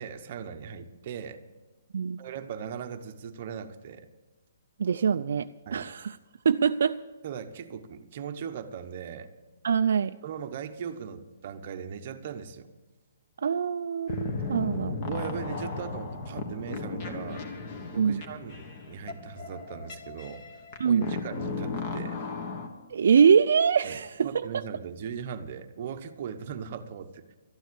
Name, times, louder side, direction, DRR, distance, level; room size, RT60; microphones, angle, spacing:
voice 1, 0.0-1.4 2.2-4.1 5.7-5.9 7.2-9.3 10.2-12.7 15.0-17.5 17.9-20.4 20.8-22.2 23.8-27.2, right 7 dB, 30° right, 7 dB, 0.9 m, -39 dB
voice 2, 4.8-6.2 6.4-7.0 9.6-10.2 13.4-15.0 18.0-18.2 20.8-21.1 22.9-24.3 24.5-24.6, right 6 dB, 55° right, 9 dB, 0.4 m, -24 dB
sound 1, 14.1-22.7, left 3 dB, 25° left, 1.3 m, -35 dB
13.0 x 10.0 x 7.9 m, 1.2 s
hypercardioid pair, 175°, 0 cm